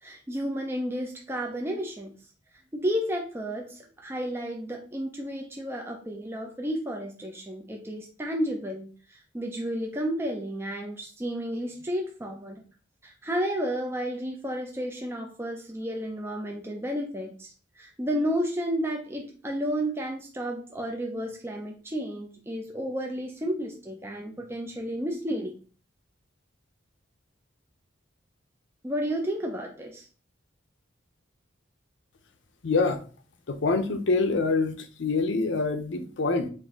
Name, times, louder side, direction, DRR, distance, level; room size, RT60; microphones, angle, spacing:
voice 1, 0.0-2.1 2.7-12.6 13.0-25.6 28.8-30.1, equal, 15° right, 1 dB, 0.4 m, -32 dB
voice 2, 32.6-33.0 33.5-36.5, left 3 dB, 70° left, 8 dB, 0.6 m, -25 dB
3.8 x 2.6 x 3.6 m, 0.39 s
head